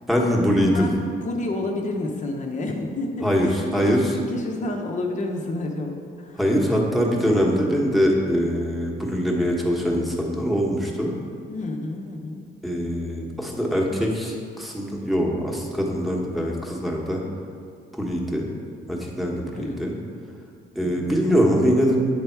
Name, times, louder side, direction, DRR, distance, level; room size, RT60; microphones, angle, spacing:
voice 1, 0.1-0.9 3.2-4.0 6.4-11.1 12.6-17.2 17.9-18.5 18.9-19.9 20.7-22.0, equal, ahead, -2 dB, 1.0 m, -23 dB
voice 2, 0.7-6.4 11.5-12.4 19.5-20.0 20.8-21.1, left 2 dB, 40° left, 1 dB, 0.8 m, -30 dB
8.0 x 3.4 x 4.5 m, 2.2 s
cardioid pair, 90°, 20 cm